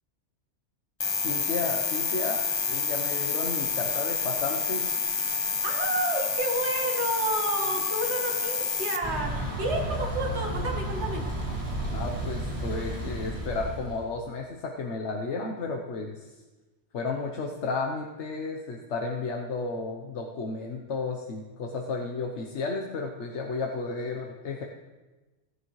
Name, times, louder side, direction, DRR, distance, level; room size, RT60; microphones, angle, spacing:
sound 1, 1.0-9.0, left 5 dB, 35° left, 0.5 m, -28 dB
voice 1, 1.2-4.9 11.9-16.4 16.9-24.6, left 3 dB, 75° left, 1 dB, 1.2 m, -33 dB
voice 2, 5.6-11.2, right 1 dB, 70° right, 1 dB, 2.0 m, -30 dB
Thunder / Bicycle, 9.0-14.1, right 1 dB, 25° right, 2.4 m, -32 dB
16.5 x 11.0 x 3.2 m, 1.2 s
omnidirectional pair, 1.2 m